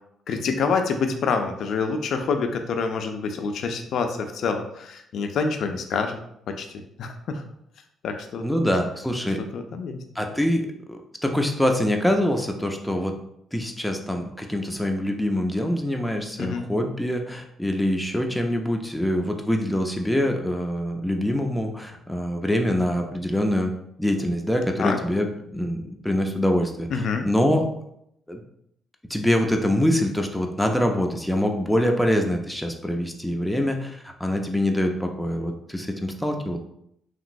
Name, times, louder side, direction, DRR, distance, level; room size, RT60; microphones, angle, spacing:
voice 1, 0.3-6.2 6.5-6.7 7.0-7.4 8.0-8.4 9.5-10.0 16.4-16.7 24.8-25.0 26.9-27.3, left 5 dB, 70° left, 5 dB, 0.3 m, -26 dB
voice 2, 8.4-9.4 10.2-13.2 13.5-23.7 24.0-25.3 25.5-27.7 28.3-28.4 29.1-36.6, equal, 5° left, 3 dB, 0.4 m, -24 dB
2.9 x 2.9 x 2.6 m, 0.75 s
cardioid pair, 90°, 0 cm